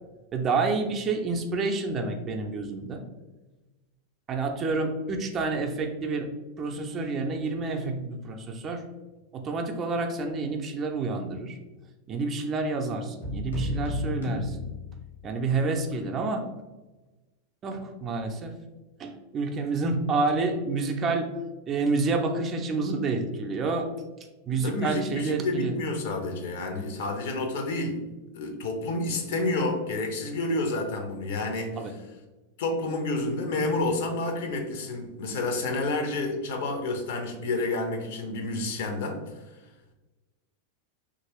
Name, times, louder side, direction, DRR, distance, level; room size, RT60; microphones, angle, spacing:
voice 1, 0.3-3.0 4.3-6.3 6.6-8.8 9.3-11.5 12.1-14.7 15.2-16.5 17.6-18.5 19.0-21.3 21.7-23.9 24.5-25.7 31.8-31.9, right 3 dB, 30° right, 4 dB, 0.4 m, -28 dB
sound 1, 13.2-15.5, equal, 80° left, 1.1 m, -32 dB
voice 2, 24.6-28.0 28.3-31.8 32.6-39.2, left 2 dB, 55° left, 4 dB, 0.5 m, -29 dB
2.9 x 2.5 x 2.9 m, 1.1 s
figure-of-eight pair, 90°, 0 cm